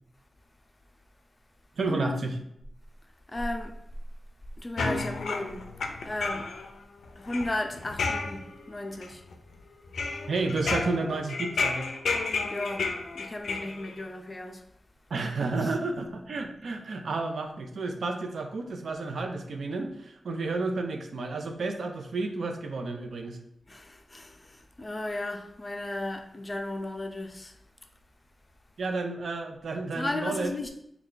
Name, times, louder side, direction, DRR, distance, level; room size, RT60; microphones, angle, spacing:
voice 1, 1.8-2.3 10.3-11.9 15.1-23.4 28.8-30.5, right 3 dB, 80° right, 0.4 m, -31 dB
voice 2, 3.0-3.8 4.6-6.5 7.2-9.3 12.3-12.9 13.1-14.6 15.6-15.7 23.7-27.6 29.9-30.7, left 1 dB, 30° left, 0.5 m, -35 dB
sound 1, 4.8-6.7 7.0-8.7 9.0-9.6 9.9-14.0, left 4 dB, 90° left, 0.4 m, -32 dB
3.2 x 2.3 x 3.8 m
cardioid pair, 55°, 0 cm